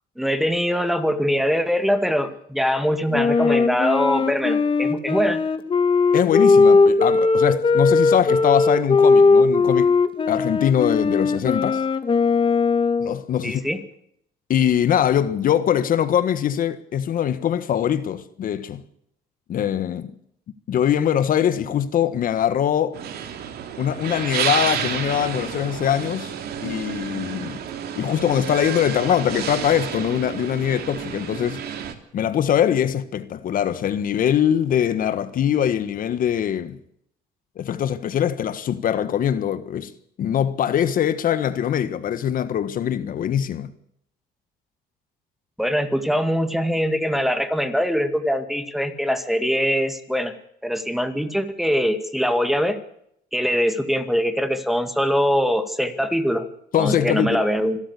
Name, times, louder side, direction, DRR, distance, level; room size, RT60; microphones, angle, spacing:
voice 1, 0.2-5.4 13.4-13.8 45.6-50.3 50.6-52.8 53.3-56.5 56.8-57.8, equal, ahead, 2.1 m, -22 dB
Wind instrument woodwind instrument, 3.1-13.2, left 4 dB, 30° left, 2.0 m, -18 dB
voice 2, 6.1-9.9 10.3-11.8 13.0-13.6 14.5-18.8 19.5-20.1 20.7-23.0 23.8-26.3 26.6-27.6 28.0-31.6 32.1-36.8 37.6-39.9 40.2-43.7 56.7-57.4, left 9 dB, 55° left, 1.5 m, -22 dB
sound 1, 22.9-31.9, right 8 dB, 70° right, 2.9 m, -30 dB
26.0 x 13.0 x 8.3 m
cardioid pair, 110°, 17 cm